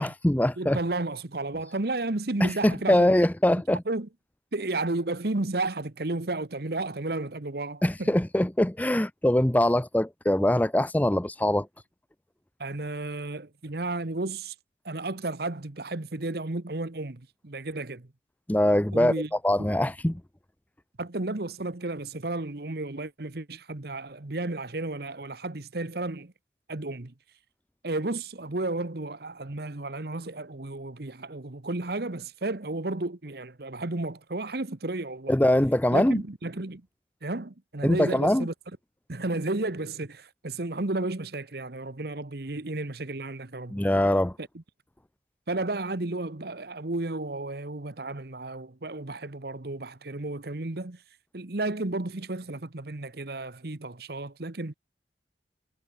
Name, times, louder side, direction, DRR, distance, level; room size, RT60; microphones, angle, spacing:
voice 1, 0.0-0.8 2.4-3.8 7.8-11.7 18.5-19.1 19.4-20.2 35.3-36.2 37.8-38.5 43.7-44.3, left 1 dB, 10° left, 0.5 m, -23 dB
voice 2, 0.6-3.2 3.9-4.1 4.5-8.1 12.6-14.5 14.8-18.1 18.9-19.3 19.6-19.7 21.0-26.3 26.7-27.1 27.8-35.3 35.9-36.9 37.2-38.5 39.1-43.8 44.4-44.6 45.5-51.0 51.3-54.7, right 2 dB, 60° right, 1.2 m, -33 dB
head